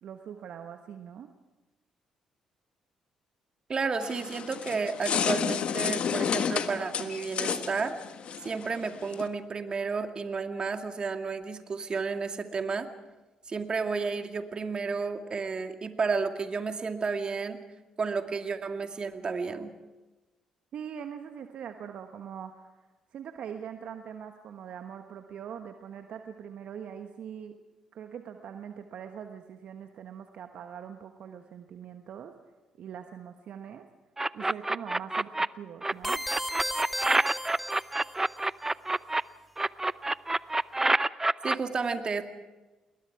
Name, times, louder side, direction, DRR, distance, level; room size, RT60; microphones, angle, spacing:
voice 1, 0.0-1.3 20.7-22.7 23.1-27.6 27.9-32.3 32.8-33.9 34.3-36.2, right 8 dB, 60° right, 6 dB, 1.3 m, -42 dB
voice 2, 3.7-7.9 8.4-12.9 13.5-17.6 18.0-19.7 41.4-42.2, right 4 dB, 40° right, 6 dB, 2.3 m, -32 dB
sound 1, 4.0-9.3, left 7 dB, 55° left, 1.4 m, -31 dB
sound 2, 34.2-35.5 35.8-39.2 39.6-41.6, right 2 dB, 20° right, 0.6 m, -27 dB
sound 3, 36.0-38.4, equal, ahead, 2.3 m, -35 dB
29.0 x 21.5 x 4.8 m, 1.2 s
hypercardioid pair, 45°, 2 cm